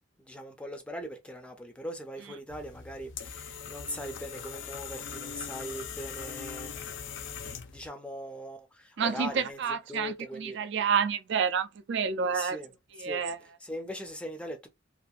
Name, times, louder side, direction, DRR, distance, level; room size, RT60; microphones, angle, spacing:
voice 1, 0.2-7.0 7.7-9.6 9.9-10.6 12.2-12.7 13.0-13.2 13.6-14.7, equal, 5° left, 0.4 m, -40 dB
sound 1, 2.5-7.9, left 7 dB, 70° left, 0.5 m, -41 dB
voice 2, 9.0-12.6 13.0-13.4, right 6 dB, 60° right, 0.4 m, -29 dB
2.7 x 2.4 x 2.4 m
head